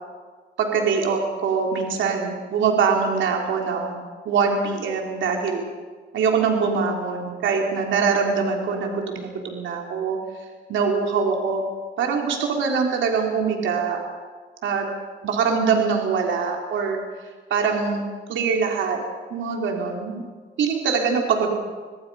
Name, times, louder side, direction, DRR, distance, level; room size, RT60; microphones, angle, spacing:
voice 1, 0.6-5.6 6.1-10.2 10.7-11.6 12.0-14.0 14.6-14.9 15.2-17.0 17.5-18.0 18.3-19.0 19.3-20.2 20.6-21.5, right 5 dB, 75° right, 1 dB, 3.4 m, -23 dB
25.0 x 20.5 x 5.5 m, 1.5 s
cardioid pair, 90°, 20 cm